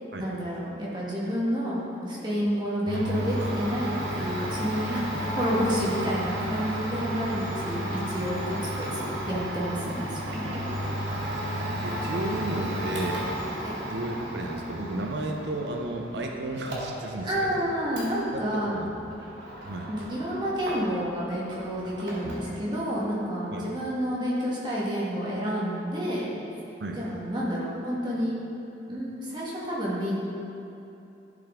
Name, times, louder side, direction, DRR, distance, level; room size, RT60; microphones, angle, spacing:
voice 1, 0.2-10.7 13.6-13.8 17.2-18.8 19.9-26.3 27.0-28.4 28.9-30.2, equal, 25° right, -7 dB, 1.6 m, -29 dB
Domestic sounds home sounds, 2.8-21.2 21.5-22.5, equal, 85° right, 2.0 m, -33 dB
voice 2, 11.8-13.4 13.9-17.6 18.3-18.9 19.6-19.9 23.5-23.7 26.8-27.0, right 1 dB, 70° right, 1 dB, 0.8 m, -33 dB
12.0 x 5.2 x 3.8 m, 2.9 s
head